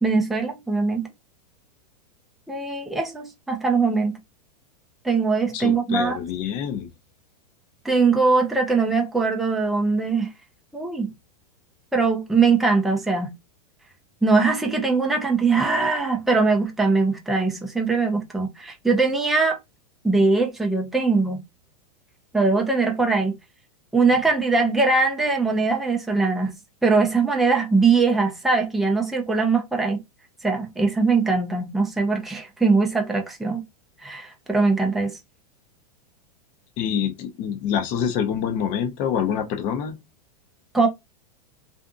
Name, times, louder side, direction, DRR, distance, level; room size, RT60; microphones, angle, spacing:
voice 1, 0.0-1.1 2.5-4.2 5.0-6.2 7.8-10.3 10.7-11.1 11.9-13.3 14.2-19.6 20.0-21.4 22.3-23.4 23.9-26.5 26.8-30.0 30.4-33.6 34.0-35.2 40.7-40.9, right 4 dB, ahead, 0.5 m, -21 dB
voice 2, 5.5-6.9 36.8-40.0, left 8 dB, 40° left, 0.7 m, -26 dB
2.6 x 2.5 x 2.3 m
hypercardioid pair, 130°, 21 cm